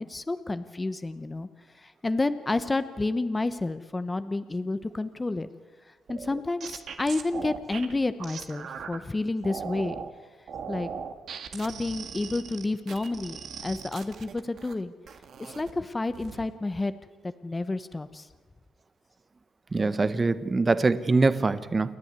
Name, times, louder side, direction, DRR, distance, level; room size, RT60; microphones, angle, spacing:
voice 1, 0.0-1.5 1.7-5.5 5.9-10.0 10.7-10.9 11.5-14.9 15.4-16.9 17.2-18.3, left 2 dB, 20° left, 12 dB, 1.0 m, -30 dB
sound 1, 6.1-9.0 9.4-10.1 10.5-14.7 15.1-15.7 16.1-16.5, right 6 dB, 60° right, 1.8 m, -39 dB
voice 2, 19.7-22.0, right 3 dB, 25° right, 14 dB, 1.2 m, -23 dB
29.0 x 10.5 x 9.7 m, 1.4 s
cardioid pair, 90°, 0 cm